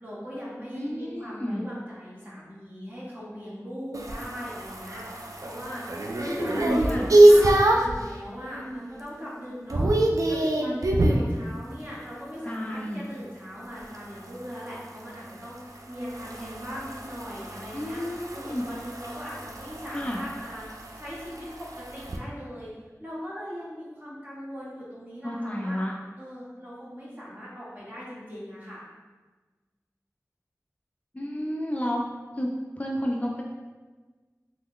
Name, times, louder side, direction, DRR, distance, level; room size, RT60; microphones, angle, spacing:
voice 1, 0.0-5.8 6.1-9.9 10.3-18.0 18.3-21.5 21.8-22.7 23.0-25.8 26.2-28.8, equal, 35° right, -8 dB, 1.2 m, -40 dB
voice 2, 0.7-1.7 6.3-7.1 12.4-13.0 17.7-18.6 19.9-20.2 25.2-25.9 31.1-32.0 32.3-33.4, equal, 25° left, -2 dB, 0.3 m, -31 dB
sound 1, 3.9-8.0 8.5-8.9 9.2-11.3 13.8-22.2, right 1 dB, 75° right, 0.3 m, -24 dB
3.0 x 2.1 x 3.6 m, 1.3 s
wide cardioid pair, 40°, 6 cm